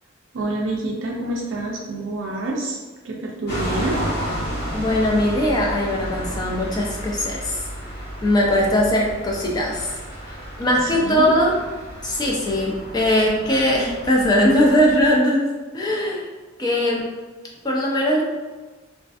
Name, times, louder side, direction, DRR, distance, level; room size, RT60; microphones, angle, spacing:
voice 1, 0.3-2.8 3.0-4.0 10.8-11.3, right 2 dB, 75° right, -2 dB, 0.4 m, -27 dB
sound 1, 3.5-15.2, equal, 55° left, 0.9 m, -32 dB
voice 2, 4.7-7.6 8.2-10.0 10.3-11.6 12.0-15.5 15.7-16.3 16.6-17.1 17.6-18.2, equal, 20° left, -2 dB, 0.3 m, -20 dB
2.5 x 2.4 x 2.3 m, 1.3 s
head